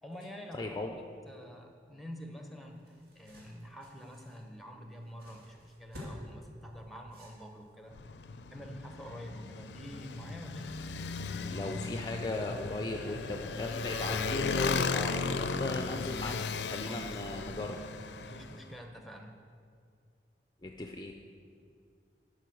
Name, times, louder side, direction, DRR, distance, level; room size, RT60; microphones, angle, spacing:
voice 1, 0.0-7.9 8.5-10.7 16.9-17.2 18.2-19.4, equal, ahead, 3 dB, 0.8 m, -47 dB
voice 2, 0.5-1.0 11.4-16.4 16.7-17.8 20.6-21.1, left 2 dB, 25° left, 3 dB, 0.4 m, -37 dB
sound 1, 2.5-7.9, left 1 dB, 55° right, 2.4 m, -51 dB
Motorcycle, 7.9-18.6, left 4 dB, 80° left, 0.5 m, -36 dB
11.5 x 5.1 x 6.2 m, 2.3 s
head